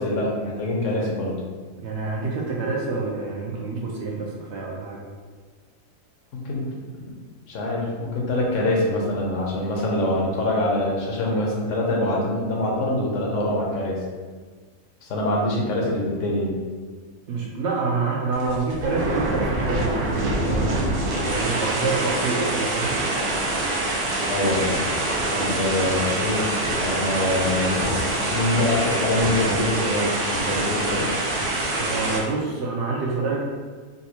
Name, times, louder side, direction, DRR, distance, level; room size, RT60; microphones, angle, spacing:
voice 1, 0.0-1.4 6.3-6.6 6.9-7.0 7.5-14.0 15.0-16.5 24.3-24.7 25.3-26.5 26.8-31.1, left 1 dB, 65° left, -2 dB, 1.0 m, -24 dB
voice 2, 1.8-5.0 17.3-20.8 21.2-23.0 31.8-33.4, right 3 dB, 65° right, -3 dB, 0.7 m, -27 dB
sound 1, 18.3-32.2, right 2 dB, 85° right, 1.1 m, -25 dB
4.0 x 2.2 x 2.8 m, 1.5 s
omnidirectional pair, 1.4 m